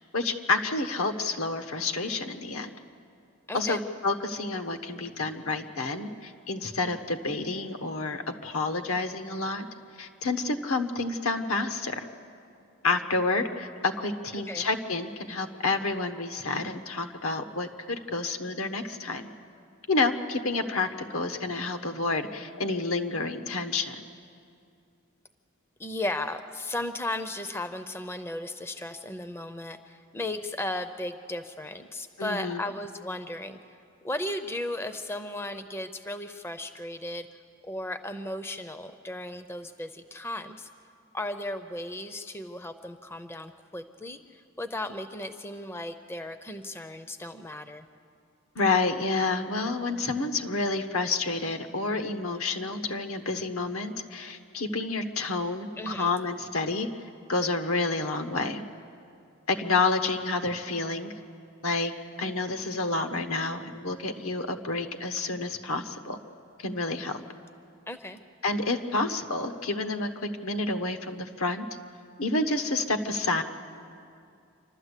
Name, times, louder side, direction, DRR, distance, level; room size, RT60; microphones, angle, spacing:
voice 1, 0.1-2.7 3.5-9.7 10.0-12.1 12.8-19.3 19.9-24.0 32.2-32.6 48.5-56.9 57.3-58.6 59.5-61.1 61.6-61.9 62.2-66.2 66.6-67.2 68.4-70.1 70.4-71.7 72.2-73.4, left 3 dB, 80° left, 7 dB, 1.2 m, -29 dB
voice 2, 3.5-3.8 14.4-14.7 25.8-33.6 34.0-37.3 37.6-40.7 41.1-47.9 55.8-56.1 67.9-68.2, left 1 dB, 10° left, 9 dB, 0.6 m, -35 dB
27.5 x 12.5 x 8.3 m, 2.4 s
head